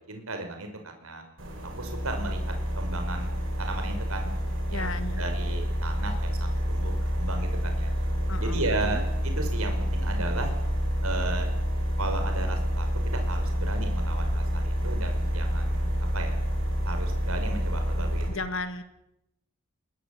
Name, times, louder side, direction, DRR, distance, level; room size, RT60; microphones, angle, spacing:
voice 1, 0.1-1.2 1.8-4.3 4.7-7.9 8.4-10.5 11.0-11.5 12.0-16.4 16.9-18.2, right 2 dB, 80° right, 5 dB, 5.6 m, -35 dB
sound 1, 1.4-18.3, equal, 60° right, 7.3 m, -28 dB
voice 2, 4.7-5.2 8.3-9.0 18.3-18.8, left 3 dB, 65° left, 10 dB, 2.3 m, -34 dB
22.0 x 20.0 x 8.6 m, 0.84 s
head